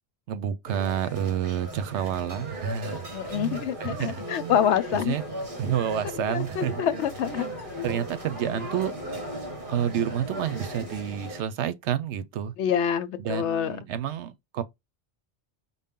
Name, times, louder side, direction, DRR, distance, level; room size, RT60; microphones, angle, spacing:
voice 1, 0.3-3.1 3.3-4.6 4.9-5.2 5.6-6.8 7.4-8.9 9.7-12.5 13.2-14.6, right 9 dB, 80° right, 0.9 m, -29 dB
sound 1, 0.7-11.4, equal, 50° right, 1.4 m, -37 dB
voice 2, 3.1-5.2 6.3-7.5 12.6-13.7, left 9 dB, 80° left, 0.9 m, -26 dB
5.3 x 2.1 x 3.6 m
omnidirectional pair, 1.2 m